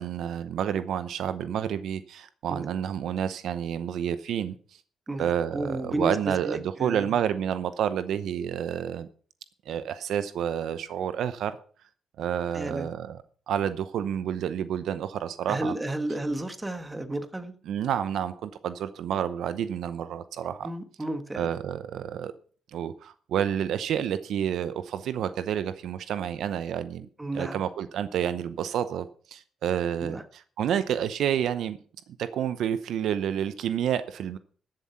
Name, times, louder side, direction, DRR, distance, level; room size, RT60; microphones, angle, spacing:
voice 1, 0.0-4.6 5.2-9.1 9.7-11.5 12.2-13.2 13.5-15.7 17.7-20.7 21.4-22.3 22.7-27.1 27.3-31.8 32.2-34.4, right 9 dB, 75° right, 0.8 m, -29 dB
voice 2, 5.1-7.1 12.5-12.9 15.5-17.5 20.6-21.5 27.2-27.6 30.0-30.2, right 1 dB, 15° right, 1.5 m, -32 dB
14.0 x 7.6 x 5.7 m
cardioid pair, 90°, 0 cm